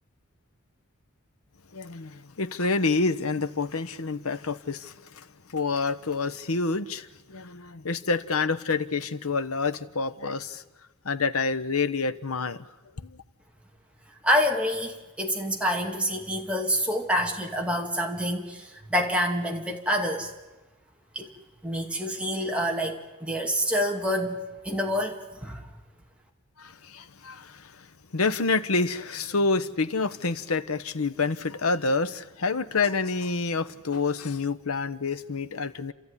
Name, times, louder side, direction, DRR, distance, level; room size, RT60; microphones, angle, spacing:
voice 1, 1.7-5.3 5.5-10.6 11.0-12.7 13.0-13.2 26.6-27.9 28.1-35.9, left 4 dB, 90° left, 1.0 m, -28 dB
voice 2, 14.2-20.3 21.1-21.3 21.6-25.6, equal, 5° right, 2.5 m, -27 dB
30.0 x 13.5 x 9.9 m
head